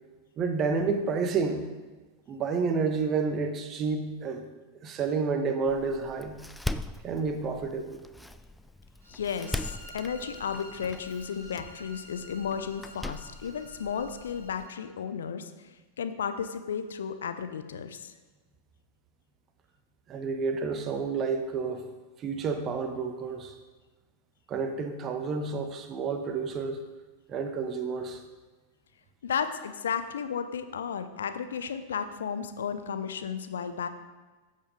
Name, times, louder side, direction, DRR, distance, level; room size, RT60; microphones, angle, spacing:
voice 1, 0.4-1.6 2.3-4.4 4.8-6.4 7.0-8.0 20.1-21.8 22.2-23.5 24.5-26.8 27.3-28.2, right 4 dB, 30° right, 7 dB, 1.1 m, -30 dB
Door, 5.7-14.7, left 1 dB, 5° left, 0.4 m, -41 dB
sound 1, 9.0-14.9, equal, 70° right, 2.5 m, -50 dB
voice 2, 9.1-15.5 16.0-18.1 29.2-33.9, left 7 dB, 65° left, 10 dB, 0.7 m, -33 dB
13.5 x 7.4 x 3.7 m, 1.3 s
figure-of-eight pair, 90°, 0 cm